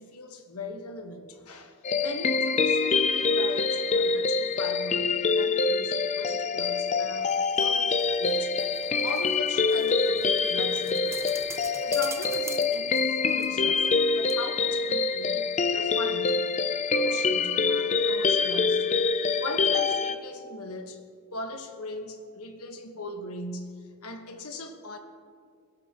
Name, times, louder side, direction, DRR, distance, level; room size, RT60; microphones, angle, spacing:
voice 1, 0.0-8.5 9.0-11.3 11.8-16.5 16.9-18.9 19.4-21.0 21.3-25.0, left 2 dB, 80° left, 5 dB, 1.3 m, -39 dB
sound 1, 1.8-20.2, left 4 dB, 30° left, 0.4 m, -25 dB
sound 2, 7.0-14.0 14.3-14.4, right 4 dB, 10° right, 0.6 m, -45 dB
21.0 x 17.0 x 2.9 m, 2.2 s
head